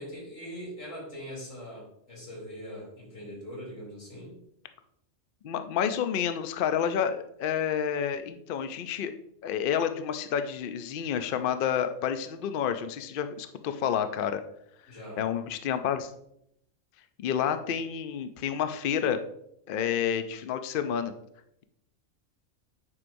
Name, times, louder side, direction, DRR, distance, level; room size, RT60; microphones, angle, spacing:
voice 1, 0.0-4.4 14.9-15.2, equal, 90° left, -4 dB, 3.3 m, -42 dB
voice 2, 5.4-9.1 9.4-14.4 15.2-16.1 17.2-19.2 19.7-21.1, left 8 dB, 60° left, 9 dB, 0.6 m, -29 dB
9.6 x 4.5 x 2.6 m, 0.76 s
omnidirectional pair, 1.3 m